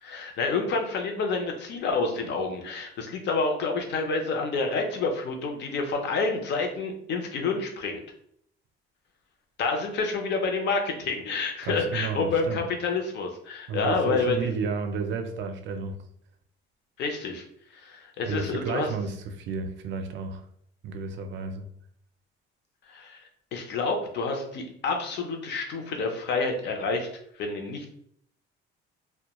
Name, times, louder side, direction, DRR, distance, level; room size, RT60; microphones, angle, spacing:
voice 1, 0.0-8.0 9.6-14.5 17.0-17.4 17.7-18.9 22.9-23.2 23.5-27.1 27.4-27.9, left 4 dB, 55° left, 3 dB, 0.5 m, -28 dB
voice 2, 11.6-12.6 13.7-16.0 18.3-20.4 20.8-21.7, right 5 dB, 60° right, 6 dB, 0.4 m, -32 dB
2.2 x 2.1 x 2.9 m, 0.68 s
cardioid pair, 135°, 21 cm